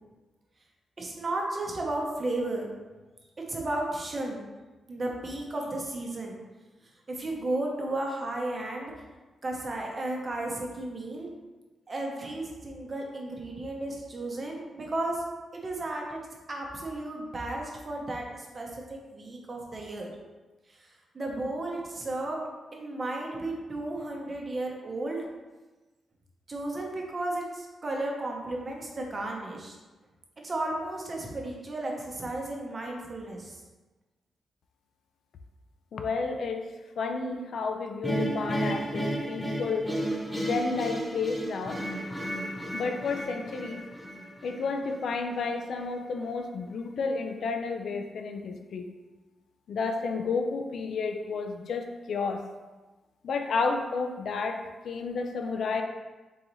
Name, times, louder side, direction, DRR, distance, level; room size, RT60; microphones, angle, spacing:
voice 1, 1.0-2.7 3.5-4.4 4.9-6.4 7.1-8.9 9.4-11.3 11.9-15.2 15.5-16.2 16.5-20.1 20.7-22.4 22.7-25.2 26.5-29.8 30.4-33.6, right 2 dB, 30° right, 0 dB, 0.8 m, -34 dB
voice 2, 35.9-36.7 37.0-39.9 40.3-41.8 42.7-43.8 44.4-48.9 49.7-52.4 53.2-55.8, left 4 dB, 65° left, 5 dB, 0.4 m, -31 dB
sound 1, 38.0-45.1, right 1 dB, 5° left, 0.5 m, -33 dB
3.9 x 3.8 x 3.0 m, 1.2 s
wide cardioid pair, 140°, 0 cm